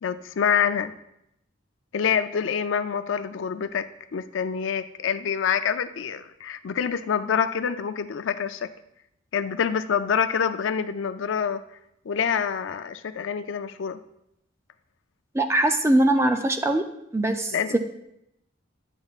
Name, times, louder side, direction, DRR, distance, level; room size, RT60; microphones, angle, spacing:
voice 1, 0.0-0.9 1.9-8.7 9.3-11.6 12.1-14.0 17.5-17.8, left 7 dB, 75° left, 10 dB, 0.4 m, -26 dB
voice 2, 15.3-16.9 17.1-17.8, right 1 dB, 15° right, 6 dB, 0.4 m, -22 dB
10.5 x 7.0 x 2.4 m, 0.80 s
head